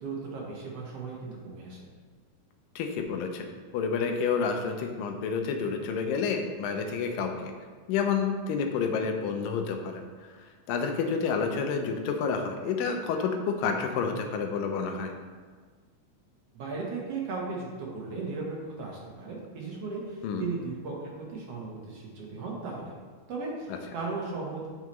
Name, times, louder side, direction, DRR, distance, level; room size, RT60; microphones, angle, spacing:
voice 1, 0.0-1.8 16.5-22.9 23.3-24.7, right 4 dB, 65° right, -3 dB, 1.7 m, -36 dB
voice 2, 2.8-7.5 7.9-10.4 10.7-15.1 20.2-20.4, left 5 dB, 80° left, 4 dB, 2.3 m, -29 dB
8.5 x 5.6 x 3.1 m, 1.5 s
omnidirectional pair, 4.1 m